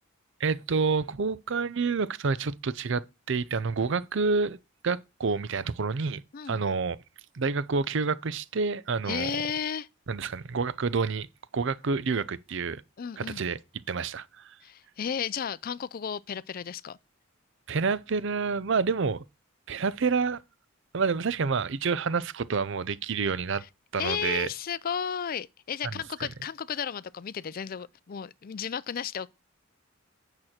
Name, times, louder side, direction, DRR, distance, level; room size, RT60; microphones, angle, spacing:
voice 1, 0.4-4.6 4.8-6.2 6.5-7.0 7.3-9.4 10.1-11.3 11.5-12.8 13.2-13.6 13.9-14.5 17.7-19.2 19.7-20.4 20.9-23.6 23.9-24.5, right 4 dB, 60° right, 0.6 m, -28 dB
voice 2, 6.3-6.6 9.1-9.9 13.0-13.5 14.6-17.0 24.0-29.3, left 7 dB, 45° left, 0.4 m, -33 dB
8.8 x 6.1 x 4.3 m
head